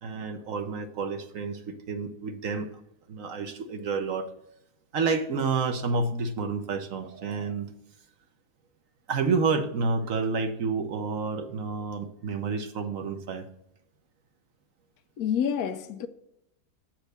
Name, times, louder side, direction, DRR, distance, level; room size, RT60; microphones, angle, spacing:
voice 1, 0.0-2.7 3.1-4.3 4.9-7.7 9.1-13.5, right 4 dB, 65° right, 1.2 m, -29 dB
voice 2, 15.2-16.1, left 8 dB, 90° left, 1.2 m, -28 dB
8.3 x 4.5 x 6.5 m
omnidirectional pair, 1.5 m